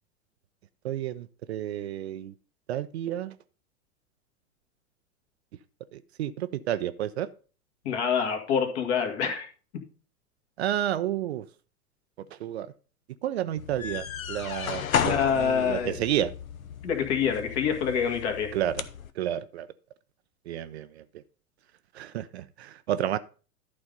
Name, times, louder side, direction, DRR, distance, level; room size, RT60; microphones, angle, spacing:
voice 1, 0.8-2.3 2.7-3.4 5.9-7.3 10.6-11.5 12.4-12.7 13.2-16.3 18.5-18.8 19.2-19.7 20.5-21.0 21.9-23.2, right 11 dB, 50° right, 13 dB, 0.5 m, -31 dB
voice 2, 7.8-9.5 15.0-16.0 16.8-18.6, left 7 dB, 45° left, 4 dB, 2.0 m, -26 dB
sound 1, 13.6-19.1, left 8 dB, 65° left, 0.9 m, -33 dB
11.5 x 4.0 x 5.3 m, 0.38 s
figure-of-eight pair, 95°, 44 cm